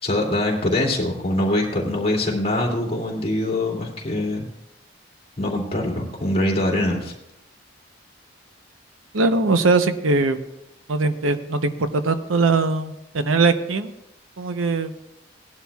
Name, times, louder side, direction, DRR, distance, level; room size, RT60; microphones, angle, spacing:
voice 1, 0.0-4.5 5.4-7.1, left 1 dB, 30° left, -2 dB, 2.5 m, -23 dB
voice 2, 9.1-10.4 10.9-13.9 14.4-14.9, right 3 dB, 80° right, 9 dB, 0.8 m, -21 dB
18.5 x 11.5 x 2.3 m, 0.87 s
head